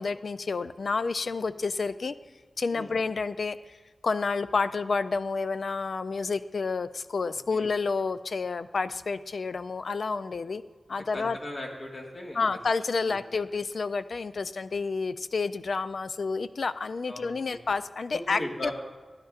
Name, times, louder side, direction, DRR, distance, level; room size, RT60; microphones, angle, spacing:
voice 1, 0.0-2.1 2.6-3.8 4.0-10.6 10.9-11.4 12.4-18.7, left 4 dB, 70° left, 13 dB, 0.3 m, -30 dB
voice 2, 7.2-7.7 11.1-12.5 17.1-17.6 18.1-18.7, left 1 dB, 50° left, 0 dB, 1.7 m, -38 dB
13.0 x 10.5 x 2.5 m, 1.4 s
wide cardioid pair, 95°, 0 cm